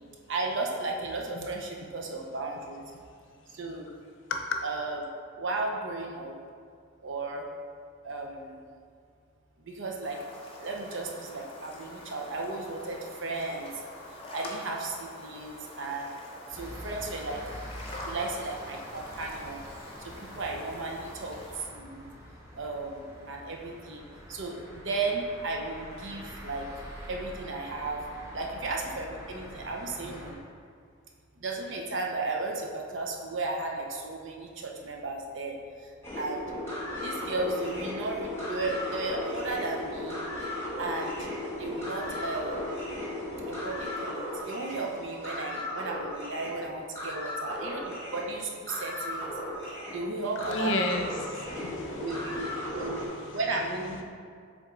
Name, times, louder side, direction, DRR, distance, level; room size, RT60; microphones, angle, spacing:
voice 1, 0.3-2.8 3.5-3.9 4.6-5.1 5.4-6.4 7.0-7.5 8.0-8.6 9.6-10.2 10.6-13.7 14.3-16.1 16.5-17.4 18.0-19.6 20.0-22.1 22.6-24.0 24.3-26.7 27.1-28.0 28.3-30.4 31.4-35.9 36.2-36.4 37.0-40.2 40.8-41.3 41.6-42.7 43.5-49.3 49.9-50.7 51.1-51.2 52.0-53.0 53.3-54.1, right 3 dB, 60° right, 1 dB, 0.7 m, -34 dB
sound 1, 10.0-21.7, left 1 dB, 30° left, 0.7 m, -46 dB
a walk to get food, 16.5-30.3, equal, 15° right, 0.9 m, -45 dB
sound 2, 36.0-53.1, left 1 dB, 10° left, 1.1 m, -36 dB
voice 2, 50.4-53.4, left 2 dB, 65° left, 3 dB, 0.6 m, -33 dB
7.2 x 3.6 x 3.8 m, 2.2 s
head